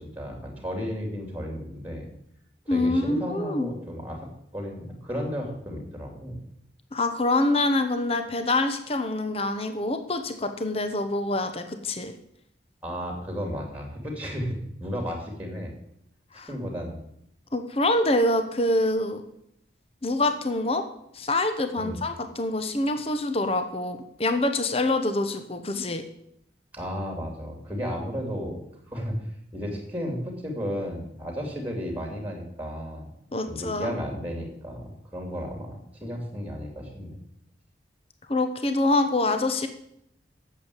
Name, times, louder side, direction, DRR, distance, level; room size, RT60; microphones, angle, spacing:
voice 1, 0.0-2.1 2.6-6.4 12.8-15.7 16.5-17.0 21.8-22.0 26.7-28.6 28.9-29.2 29.5-33.1 33.5-37.1, equal, 10° right, 1 dB, 2.9 m, -33 dB
voice 2, 2.7-3.7 6.9-12.1 16.3-16.5 17.5-19.2 20.0-20.8 21.1-26.0 33.3-33.9 38.3-39.7, left 2 dB, 35° left, 8 dB, 0.9 m, -25 dB
8.6 x 7.5 x 8.3 m, 0.76 s
head